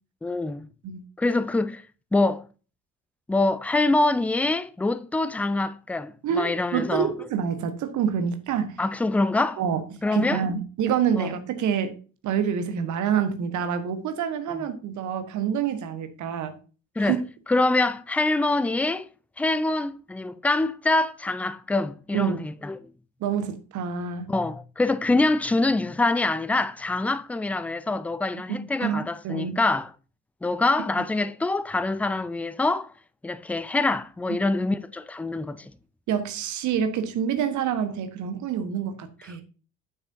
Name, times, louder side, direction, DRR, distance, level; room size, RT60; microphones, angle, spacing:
voice 1, 0.2-0.7 1.2-1.8 2.1-2.5 3.3-7.1 8.8-9.6 10.0-10.4 11.2-11.3 14.5-14.6 17.0-17.2 17.5-19.1 19.4-22.8 24.3-29.9 30.4-32.9 33.2-35.7, left 2 dB, 5° left, 0.4 m, -25 dB
voice 2, 6.2-8.8 9.6-9.8 10.1-11.9 12.2-16.6 17.0-17.2 22.1-22.4 23.2-24.3 28.5-29.6 34.3-34.4 36.1-39.4, right 8 dB, 50° right, 1.3 m, -27 dB
9.5 x 7.2 x 2.7 m
figure-of-eight pair, 50°, 38 cm